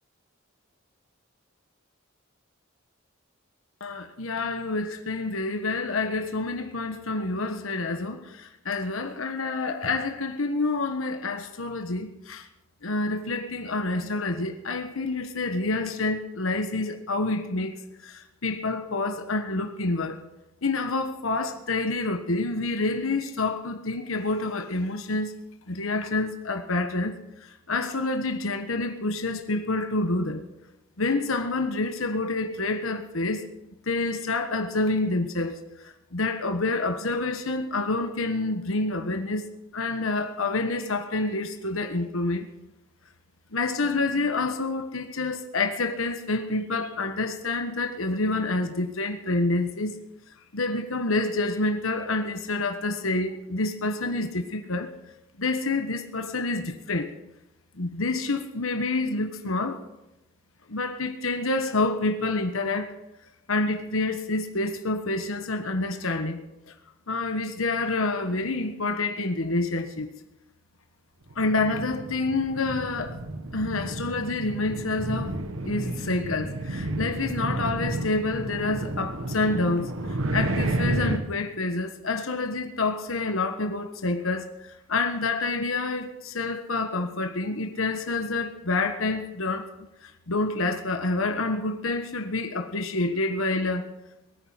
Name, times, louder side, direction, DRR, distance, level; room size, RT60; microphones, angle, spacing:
voice 1, 3.8-12.5 12.8-20.2 20.6-25.4 25.7-30.4 31.0-33.4 33.9-39.5 39.7-42.5 43.5-50.0 50.5-54.9 55.4-57.1 57.7-59.8 60.7-62.9 63.5-66.4 66.7-66.8 67.1-70.1 71.4-73.2 73.5-75.3 75.6-80.0 80.3-84.5 84.9-89.7 90.0-93.9, left 2 dB, 90° left, 1.3 m, -28 dB
sound 1, 71.3-81.2, right 2 dB, 85° right, 1.3 m, -31 dB
21.5 x 9.6 x 5.9 m
head